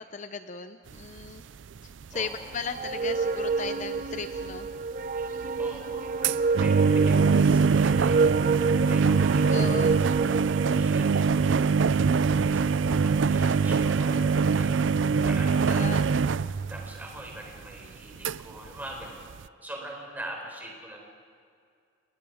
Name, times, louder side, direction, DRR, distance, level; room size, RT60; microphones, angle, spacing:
voice 1, 0.0-1.4 1.8-4.7 9.5-10.0 15.6-16.1, left 5 dB, 40° left, 10 dB, 0.6 m, -37 dB
sound 1, 1.2-1.4 1.8-1.9 2.0-2.1 2.5-2.6 3.1-3.2 3.4-3.7 4.0-4.7 5.2-17.4 17.8-17.9 18.2-18.4 18.6-19.0 19.3-19.4, right 5 dB, 80° right, 0.5 m, -23 dB
voice 2, 2.1-2.6 5.6-8.2 8.7-10.1 10.7-11.9 12.5-14.9 15.2-15.9 16.7-21.0, right 1 dB, 10° right, 0 dB, 4.5 m, -43 dB
sound 2, 2.7-10.9, right 4 dB, 45° right, 0.7 m, -29 dB
28.5 x 20.5 x 5.0 m, 2.3 s
head